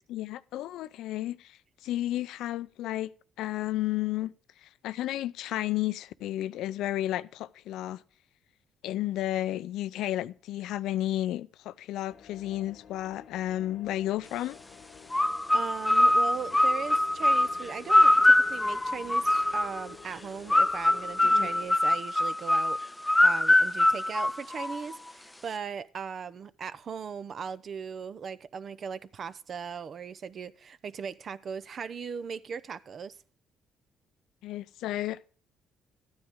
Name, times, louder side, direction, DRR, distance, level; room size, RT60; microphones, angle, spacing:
voice 1, 0.1-3.1 3.4-4.3 4.6-8.0 8.8-14.6 21.2-21.5 34.4-35.3, left 14 dB, 80° left, 0.5 m, -32 dB
sound 1, 12.1-21.7, left 7 dB, 65° left, 1.1 m, -51 dB
sound 2, 15.1-19.8 20.5-25.0, left 1 dB, 10° left, 0.4 m, -23 dB
voice 2, 15.5-22.8 23.2-33.2, right 6 dB, 55° right, 0.7 m, -38 dB
13.0 x 9.7 x 3.6 m
supercardioid pair, 75°, 0 cm